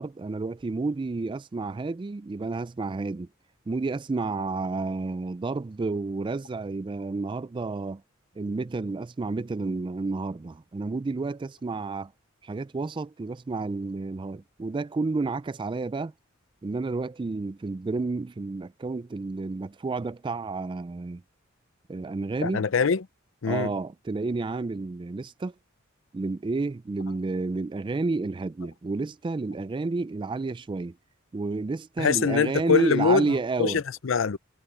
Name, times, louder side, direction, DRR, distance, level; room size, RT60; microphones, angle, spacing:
voice 1, 0.0-3.3 3.7-8.0 8.4-12.1 12.4-16.1 16.6-21.2 21.9-22.7 23.4-25.5 26.1-31.0 31.3-33.8, right 3 dB, 25° right, 0.3 m, -30 dB
voice 2, 22.4-23.0 23.4-23.7 32.0-33.3 33.6-34.4, left 5 dB, 70° left, 0.6 m, -23 dB
head